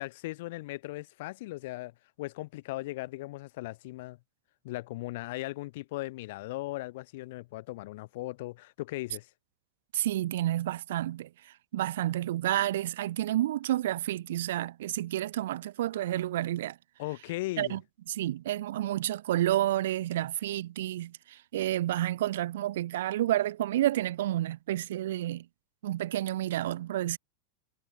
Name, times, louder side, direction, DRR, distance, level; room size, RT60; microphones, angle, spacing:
voice 1, 0.0-4.2 4.6-9.3 17.0-17.8, left 19 dB, 65° left, 0.9 m, -38 dB
voice 2, 9.9-11.3 11.7-16.8 17.6-17.8 18.1-25.4 25.8-27.2, right 13 dB, 75° right, 0.5 m, -30 dB
hypercardioid pair, 115°, 0 cm